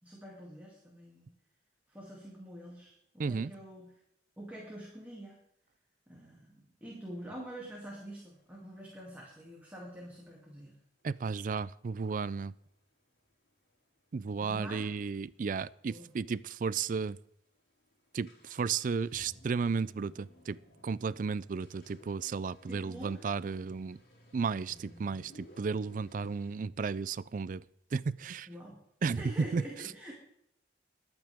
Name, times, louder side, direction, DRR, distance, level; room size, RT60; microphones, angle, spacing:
voice 1, 0.0-1.3 1.9-3.9 4.4-5.4 6.1-10.7 14.2-14.9 15.9-16.1 22.7-23.2 28.5-28.8 29.1-30.1, right 1 dB, 10° right, -4 dB, 2.6 m, -46 dB
voice 2, 3.2-3.5 11.0-12.5 14.1-17.2 18.1-20.6 20.8-24.0 24.3-27.6 27.9-28.5 29.0-29.2 29.5-29.6, right 5 dB, 50° right, 20 dB, 0.4 m, -34 dB
sound 1, 7.2-7.3 7.7-10.4 11.0-11.1 11.4-11.6 12.0-15.7 16.0-16.1 16.2-16.3 17.0-17.1 17.4-26.6, equal, 75° left, 5.4 m, -59 dB
23.0 x 8.9 x 3.6 m, 0.73 s
head